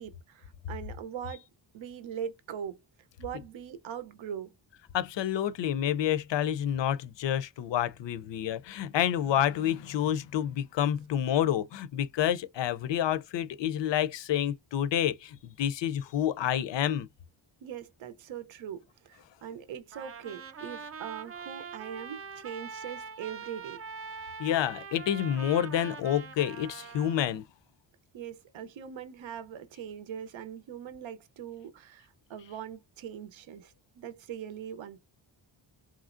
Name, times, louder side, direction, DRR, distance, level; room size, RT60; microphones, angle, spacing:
voice 1, 0.0-1.5 1.7-2.8 3.2-4.5 17.6-23.8 28.1-35.0, right 9 dB, 70° right, 0.7 m, -41 dB
voice 2, 4.9-17.1 24.4-27.4, left 10 dB, 65° left, 0.5 m, -29 dB
Trumpet, 19.9-27.4, right 5 dB, 30° right, 0.4 m, -43 dB
3.1 x 2.4 x 2.5 m
cardioid pair, 60°, 48 cm